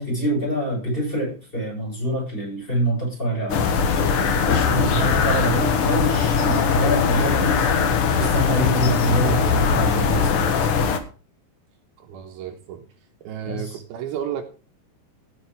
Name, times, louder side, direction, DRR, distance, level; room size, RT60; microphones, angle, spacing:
voice 1, 0.0-4.1 4.5-7.7 8.2-10.5 13.4-13.8, equal, 10° left, -1 dB, 8.0 m, -25 dB
sound 1, 3.5-11.0, left 6 dB, 80° left, 1.2 m, -20 dB
voice 2, 12.0-12.9 13.2-14.4, right 9 dB, 75° right, 4 dB, 2.8 m, -32 dB
16.0 x 7.6 x 4.7 m, 0.36 s
omnidirectional pair, 4.6 m